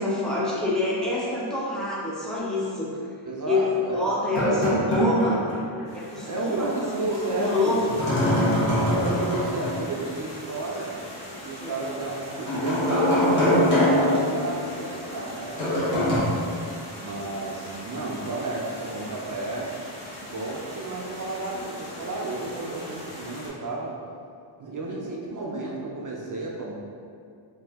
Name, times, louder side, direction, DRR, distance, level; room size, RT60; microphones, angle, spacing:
voice 1, 0.0-3.0 3.5-5.5 5.9-6.7 7.1-7.8 11.6-11.7, left 2 dB, ahead, -6 dB, 0.6 m, -26 dB
voice 2, 3.3-4.1 4.4-4.8 6.3-7.8 8.8-10.9 11.4-16.3 17.0-19.7 20.2-24.0 24.6-26.7, right 2 dB, 40° right, -3 dB, 0.5 m, -32 dB
sound 1, 4.4-5.9 6.1-6.2 7.9-9.9 12.5-15.0 15.6-16.2, left 1 dB, 70° left, 1.0 m, -23 dB
sound 2, 5.9-23.5, equal, 30° left, 1.3 m, -41 dB
2.7 x 2.6 x 3.4 m, 2.3 s
wide cardioid pair, 90°, 49 cm